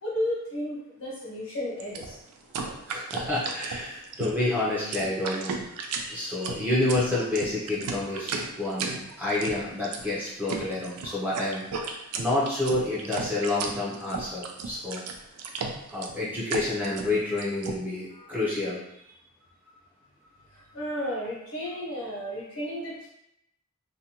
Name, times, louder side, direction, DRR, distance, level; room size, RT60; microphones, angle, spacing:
voice 1, 0.0-2.2 20.5-23.1, left 1 dB, 65° left, -5 dB, 1.0 m, -33 dB
sound 1, 1.8-17.8, right 4 dB, 90° right, 0.4 m, -35 dB
voice 2, 2.9-15.0 15.9-18.8, left 2 dB, 10° right, -8 dB, 0.6 m, -29 dB
2.5 x 2.2 x 2.8 m, 0.80 s
head